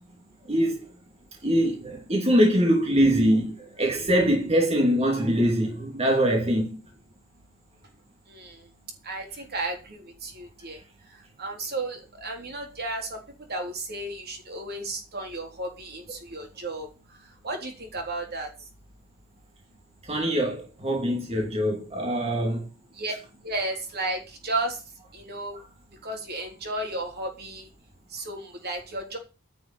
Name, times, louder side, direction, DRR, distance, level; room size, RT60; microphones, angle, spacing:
voice 1, 0.5-0.9 1.4-6.8 20.1-22.7, equal, 30° right, 2.9 m, -23 dB
voice 2, 9.0-10.8 11.4-13.2 13.5-16.9 17.4-18.5 23.0-23.1 23.4-24.8 25.1-25.6 26.0-27.7 28.1-29.2, right 2 dB, 50° right, 3.7 m, -33 dB
10.5 x 6.2 x 8.7 m
head